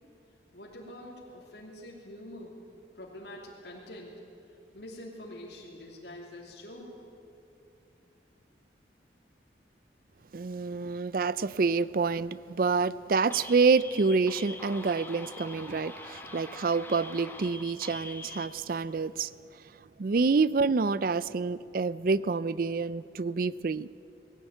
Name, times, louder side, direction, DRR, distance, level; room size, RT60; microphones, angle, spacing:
voice 1, 0.5-2.6 2.9-4.2 4.5-6.9, left 1 dB, 75° left, -3 dB, 2.9 m, -45 dB
voice 2, 10.3-19.3 20.0-24.0, right 4 dB, 50° right, 18 dB, 0.4 m, -27 dB
sound 1, 13.3-18.5, left 2 dB, 10° left, 1.4 m, -44 dB
20.5 x 17.0 x 9.2 m, 2.7 s
head